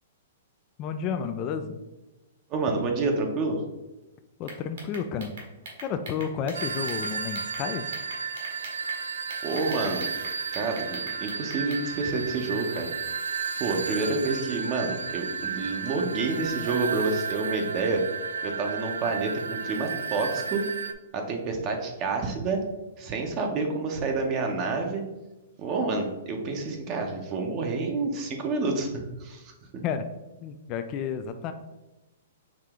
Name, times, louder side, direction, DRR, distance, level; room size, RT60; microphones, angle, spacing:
voice 1, 0.8-1.8 4.4-5.3 5.8-7.9 29.8-30.1 30.4-31.5, left 7 dB, 35° left, 8 dB, 0.3 m, -31 dB
voice 2, 2.5-3.6 9.4-10.1 10.5-12.9 13.6-18.0 18.4-20.6 21.1-22.6 23.0-25.0 25.6-29.8, right 3 dB, 35° right, 2 dB, 0.7 m, -28 dB
sound 1, 4.4-7.6 7.9-9.0 9.3-11.8, right 2 dB, 70° right, 1.5 m, -42 dB
sound 2, 6.5-20.9, right 5 dB, 85° right, 0.3 m, -33 dB
4.9 x 2.8 x 3.5 m, 1.0 s
hypercardioid pair, 130°, 0 cm